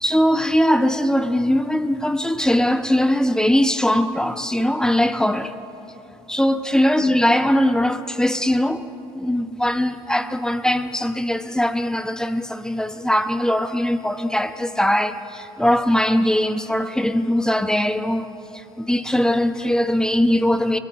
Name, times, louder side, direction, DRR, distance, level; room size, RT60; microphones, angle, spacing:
voice 1, 0.0-5.5 6.3-8.8 9.1-20.8, left 1 dB, 5° left, 1.0 m, -20 dB
22.0 x 21.0 x 7.4 m
hypercardioid pair, 60°, 13 cm